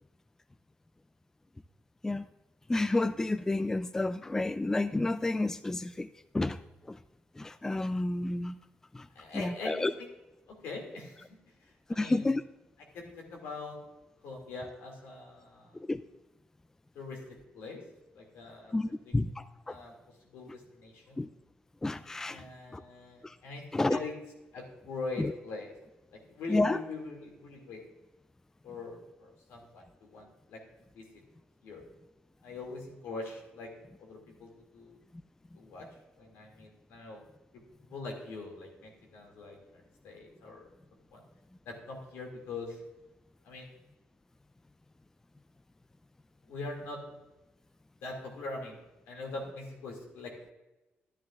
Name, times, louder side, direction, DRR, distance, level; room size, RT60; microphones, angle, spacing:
voice 1, 2.7-6.1 6.3-6.6 6.9-7.0 7.4-8.6 8.9-9.1 9.3-9.9 11.9-12.4 15.7-16.0 18.7-19.7 21.2-21.3 21.8-22.4 22.7-22.8 23.2-23.4 23.7-24.0 25.2-25.3 26.5-26.8, left 2 dB, 10° left, 13 dB, 0.3 m, -30 dB
voice 2, 9.1-10.1 10.5-12.3 12.9-13.8 14.2-15.8 16.9-17.9 18.1-19.2 19.7-21.2 22.3-24.1 24.5-25.7 26.1-27.8 28.6-30.6 30.9-31.2 31.6-31.9 32.4-33.7 34.0-35.0 35.5-35.9 36.2-37.2 37.5-37.6 37.9-40.7 41.1-41.2 41.7-42.8 43.4-43.7 46.4-47.2 48.0-48.8 49.1-50.5, left 3 dB, 90° left, 1 dB, 2.3 m, -43 dB
12.5 x 10.5 x 2.4 m, 1.0 s
cardioid pair, 95°, 4 cm